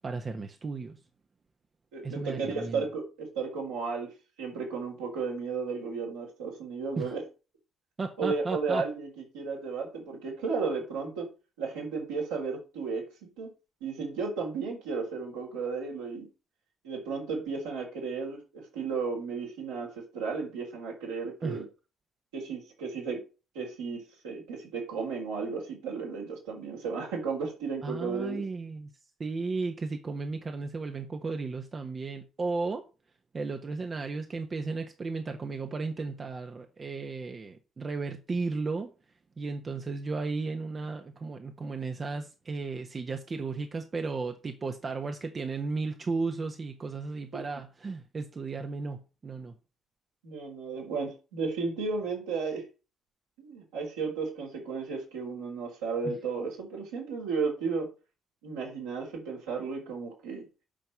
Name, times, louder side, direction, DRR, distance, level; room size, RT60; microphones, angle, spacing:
voice 1, 0.0-1.0 2.0-2.8 7.0-7.1 8.0-8.9 21.4-21.6 27.8-28.9 29.2-32.8 33.3-38.9 39.4-49.5 56.0-56.2, right 4 dB, 35° right, 1.3 m, -34 dB
voice 2, 1.9-4.1 4.4-7.2 8.2-9.1 9.3-11.3 11.6-13.5 13.8-16.3 16.8-21.6 22.3-23.2 23.5-28.4 50.2-52.6 53.4-57.9 58.4-60.5, right 4 dB, 75° right, 4.7 m, -34 dB
9.0 x 5.9 x 7.7 m
figure-of-eight pair, 45°, 0 cm